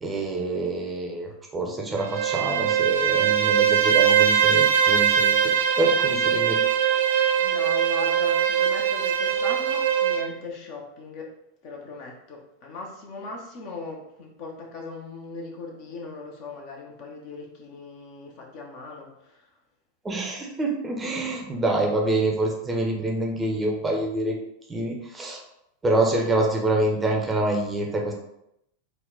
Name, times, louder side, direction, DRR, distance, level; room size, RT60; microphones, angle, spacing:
voice 1, 0.0-6.6 20.0-24.4 24.7-25.4 25.8-28.1, right 2 dB, 15° right, 1 dB, 0.7 m, -26 dB
Bowed string instrument, 2.0-10.3, right 8 dB, 60° right, 0.4 m, -21 dB
voice 2, 7.4-11.3 11.6-19.5, left 3 dB, 45° left, 0 dB, 0.9 m, -39 dB
3.9 x 2.4 x 3.9 m, 0.80 s
figure-of-eight pair, 90°, 0 cm